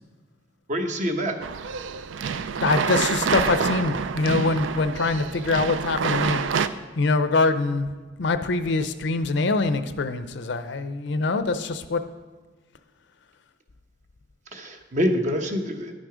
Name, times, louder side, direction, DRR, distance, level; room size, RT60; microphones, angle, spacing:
voice 1, 0.7-1.4 14.5-15.9, equal, 40° right, 5 dB, 0.9 m, -26 dB
sound 1, 1.4-6.7, right 6 dB, 85° right, 0.4 m, -27 dB
voice 2, 2.6-6.7 7.0-7.9 8.2-12.0, left 3 dB, 70° left, 11 dB, 0.6 m, -24 dB
11.0 x 6.3 x 4.9 m, 1.4 s
head